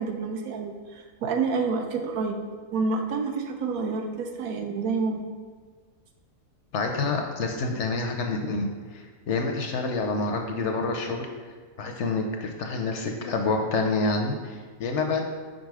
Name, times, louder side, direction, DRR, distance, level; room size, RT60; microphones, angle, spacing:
voice 1, 0.0-2.4 2.7-5.3, right 4 dB, 75° right, 3 dB, 1.1 m, -28 dB
voice 2, 6.7-11.3 11.8-15.2, left 3 dB, 65° left, 3 dB, 0.7 m, -28 dB
5.2 x 4.0 x 4.8 m, 1.5 s
omnidirectional pair, 1.6 m